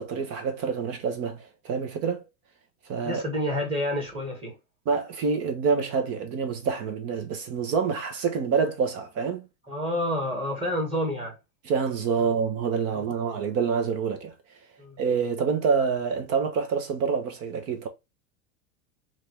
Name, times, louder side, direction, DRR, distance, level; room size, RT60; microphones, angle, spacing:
voice 1, 0.0-2.2 2.9-3.2 4.9-9.5 11.6-14.3 15.0-17.9, right 5 dB, 35° right, 0.8 m, -27 dB
voice 2, 3.0-4.6 9.7-11.4 12.9-13.0 14.8-15.0, equal, 15° right, 1.6 m, -29 dB
3.9 x 2.4 x 3.1 m
supercardioid pair, 130°, 41 cm